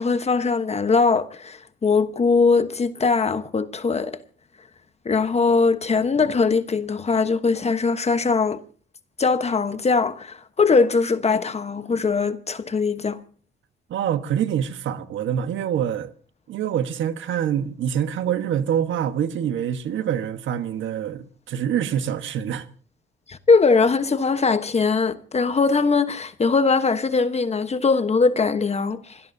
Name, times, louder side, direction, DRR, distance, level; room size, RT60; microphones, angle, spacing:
voice 1, 0.0-4.2 5.0-8.6 9.2-13.2 23.3-29.2, left 4 dB, 35° left, 1.1 m, -21 dB
voice 2, 13.9-16.1 16.5-22.7, right 9 dB, 75° right, 1.3 m, -25 dB
26.0 x 17.0 x 2.8 m
cardioid pair, 90°, 20 cm